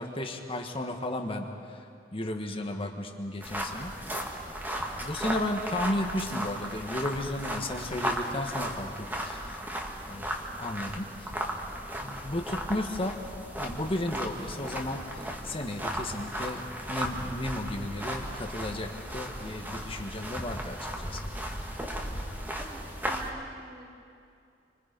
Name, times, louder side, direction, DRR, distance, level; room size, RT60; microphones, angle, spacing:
voice 1, 0.0-1.8 2.1-3.9 5.0-9.4 10.1-11.3 12.0-13.2 13.6-21.2, left 1 dB, 30° left, 3 dB, 1.5 m, -34 dB
sound 1, 3.4-23.3, right 1 dB, 10° right, 2.0 m, -36 dB
voice 2, 22.5-23.9, right 2 dB, 60° right, -3 dB, 6.5 m, -47 dB
29.0 x 25.5 x 5.3 m, 2.5 s
head